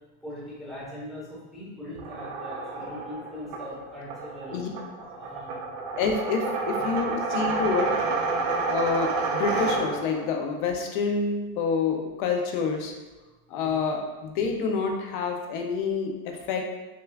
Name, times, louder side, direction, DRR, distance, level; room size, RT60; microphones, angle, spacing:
voice 1, 0.2-4.6 5.0-5.6 6.4-7.4 13.6-13.7, left 1 dB, ahead, -9 dB, 1.0 m, -41 dB
sound 1, 1.9-10.3, right 3 dB, 40° right, 0.5 m, -29 dB
voice 2, 6.0-8.1 8.7-12.9 13.5-16.6, left 5 dB, 40° left, 3 dB, 0.4 m, -28 dB
6.6 x 2.2 x 2.3 m, 1.2 s
supercardioid pair, 160°, 43 cm